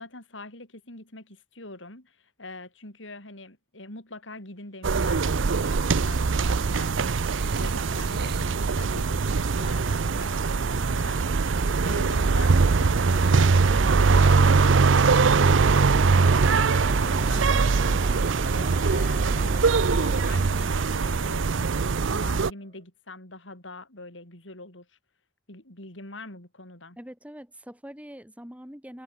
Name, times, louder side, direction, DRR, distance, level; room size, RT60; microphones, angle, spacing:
voice 1, 0.0-21.5 22.0-24.9 25.5-27.0, left 2 dB, 75° left, 7.0 m, -44 dB
sound 1, 4.8-22.5, right 4 dB, 75° right, 0.6 m, -22 dB
sound 2, 6.2-21.7, right 2 dB, 45° right, 2.9 m, -39 dB
Burping eructation, 7.1-8.8 17.5-18.3, right 6 dB, 60° right, 6.3 m, -45 dB
voice 2, 27.0-29.0, equal, 5° right, 4.5 m, -43 dB
head